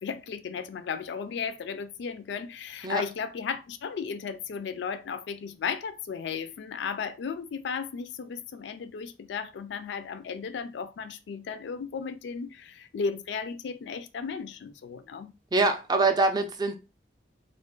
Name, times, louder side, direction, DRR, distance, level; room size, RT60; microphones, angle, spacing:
voice 1, 0.0-15.3, left 6 dB, 70° left, 0.3 m, -35 dB
voice 2, 15.5-16.7, right 3 dB, 20° right, 0.3 m, -24 dB
2.4 x 2.1 x 3.6 m
head